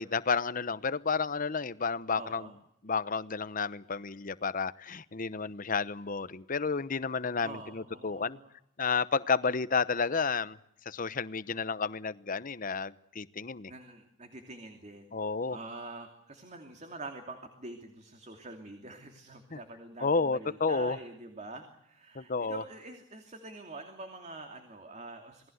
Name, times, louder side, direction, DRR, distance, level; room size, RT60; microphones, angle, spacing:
voice 1, 0.0-2.5 2.8-8.4 8.8-10.6 10.9-13.7 15.1-15.6 19.5-19.6 20.0-21.0 22.1-22.6, left 5 dB, 45° left, 16 dB, 0.9 m, -31 dB
voice 2, 2.1-2.5 7.4-8.5 13.7-15.1 15.5-25.5, right 2 dB, 40° right, 5 dB, 2.8 m, -45 dB
28.0 x 19.5 x 8.0 m, 0.77 s
head